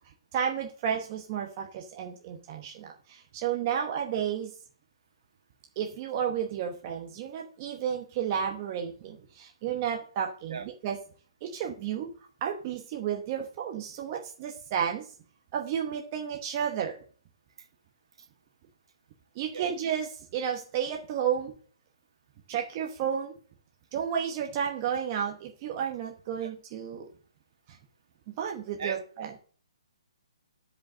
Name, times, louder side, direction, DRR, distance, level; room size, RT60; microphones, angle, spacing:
voice 1, 0.3-4.5 5.8-11.0 11.4-12.1 12.4-15.1 15.5-17.0 19.3-21.5 22.5-23.3 23.9-27.1 27.7-27.8 28.4-29.3, right 8 dB, 25° right, 1 dB, 0.9 m, -32 dB
voice 2, 3.6-3.9 10.5-10.6 19.5-19.7 26.4-26.5 28.8-29.0, right 5 dB, 60° right, 5 dB, 1.9 m, -37 dB
10.0 x 5.3 x 7.2 m, 0.44 s
hypercardioid pair, 170°, 3 cm